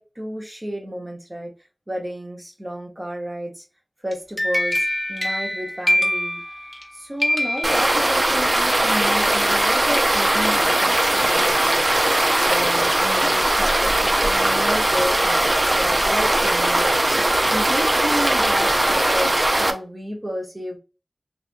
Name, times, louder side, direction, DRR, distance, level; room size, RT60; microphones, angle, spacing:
voice 1, 0.0-1.5 1.9-3.6 4.0-4.8 5.1-6.4 6.9-11.9 12.4-15.5 15.8-20.8, equal, 30° right, 1.1 m, -31 dB
sound 1, 4.1-6.9 7.2-8.5, left 1 dB, 10° left, 0.7 m, -24 dB
sound 2, 7.6-19.7, right 1 dB, 50° right, 0.4 m, -19 dB
3.3 x 2.5 x 2.5 m
wide cardioid pair, 45°, 0 cm